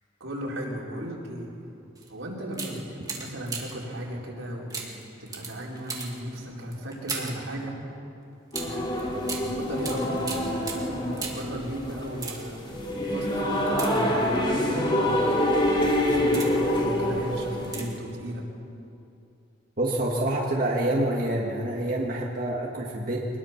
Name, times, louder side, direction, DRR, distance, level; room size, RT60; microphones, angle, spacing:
voice 1, 0.2-1.5 2.1-4.9 5.2-7.8 8.6-12.6 13.0-15.4 15.8-18.4, equal, 85° right, -3 dB, 4.5 m, -35 dB
sound 1, 2.0-2.1 2.5-3.9 4.7-7.5 8.5-11.6 12.1-12.7 13.7-14.5 15.2-15.4 16.0-16.8 17.6-18.1 18.4-18.5, right 4 dB, 20° right, 2.4 m, -38 dB
sound 2, 8.5-17.8, left 1 dB, 25° left, 2.8 m, -26 dB
voice 2, 19.8-23.3, right 1 dB, 45° right, -2 dB, 1.8 m, -27 dB
23.0 x 21.0 x 5.9 m, 2.7 s
head